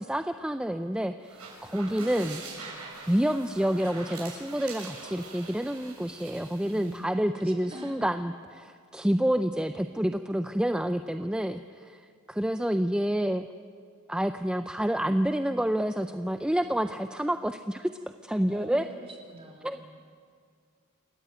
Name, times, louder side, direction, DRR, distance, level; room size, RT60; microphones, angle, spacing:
voice 1, 0.0-2.4 3.1-12.0 12.3-13.5 14.1-17.9 18.2-18.9 19.6-19.8, equal, 5° right, 8 dB, 0.5 m, -28 dB
sound 1, 1.2-7.0, right 4 dB, 80° right, 7.2 m, -44 dB
voice 2, 1.9-2.6 6.6-8.0 18.5-19.8, right 1 dB, 30° right, 0 dB, 3.5 m, -45 dB
27.5 x 14.0 x 9.0 m, 2.1 s
head